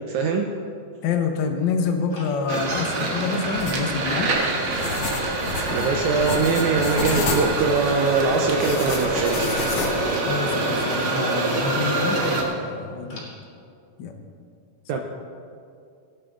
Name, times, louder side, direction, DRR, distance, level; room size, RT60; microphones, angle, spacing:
voice 1, 0.1-0.5 5.7-9.8 14.9-15.0, right 4 dB, 75° right, 3 dB, 2.0 m, -23 dB
voice 2, 1.0-4.3 10.3-13.3 14.0-14.1, left 5 dB, 85° left, 4 dB, 1.0 m, -27 dB
sound 1, 2.1-2.5 3.1-3.3 4.1-4.3 5.1-5.4 6.1-6.4 7.1-7.3 8.1-8.3 9.1-9.3 10.1-10.3 11.1-11.3 12.1-12.3 13.1-13.3, left 1 dB, 35° left, 3.7 m, -41 dB
sound 2, 2.5-12.4, right 2 dB, 50° right, 1.9 m, -25 dB
sound 3, 3.6-10.0, left 3 dB, 55° left, 1.8 m, -30 dB
18.0 x 10.5 x 3.8 m, 2.4 s
omnidirectional pair, 3.7 m